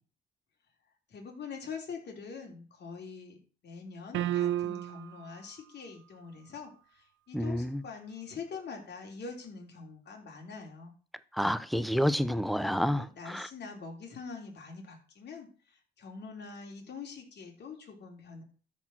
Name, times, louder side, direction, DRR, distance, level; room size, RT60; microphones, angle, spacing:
voice 1, 1.1-3.4 3.6-10.9 12.6-18.4, left 5 dB, 60° left, 3.5 m, -44 dB
sound 1, 4.1-5.2, right 12 dB, 75° right, 0.6 m, -31 dB
voice 2, 7.3-7.8 11.3-13.5, equal, ahead, 0.7 m, -29 dB
13.0 x 4.5 x 6.1 m
cardioid pair, 90°, 20 cm